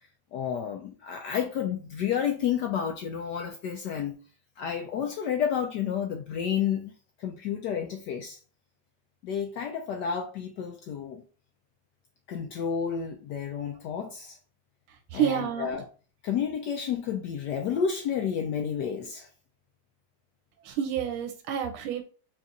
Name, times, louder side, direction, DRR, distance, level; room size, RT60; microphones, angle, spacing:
voice 1, 0.3-4.2 4.6-6.9 7.2-8.4 9.2-11.2 12.3-14.4 15.1-15.8 16.2-19.3, left 8 dB, 85° left, 0.9 m, -30 dB
voice 2, 15.1-15.8 20.6-22.0, right 9 dB, 90° right, 1.5 m, -29 dB
4.1 x 2.4 x 3.9 m
omnidirectional pair, 2.3 m